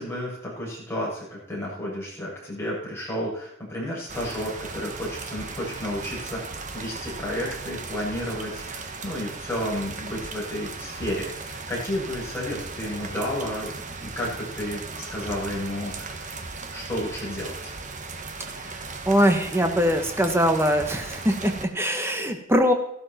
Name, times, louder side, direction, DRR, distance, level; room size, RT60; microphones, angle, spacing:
voice 1, 0.0-16.3 16.7-17.7, equal, 10° left, -6 dB, 7.3 m, -32 dB
sound 1, 4.1-21.7, right 3 dB, 40° right, 1.3 m, -37 dB
voice 2, 19.0-22.7, equal, 10° right, 5 dB, 1.5 m, -22 dB
14.5 x 12.5 x 4.4 m, 0.72 s
head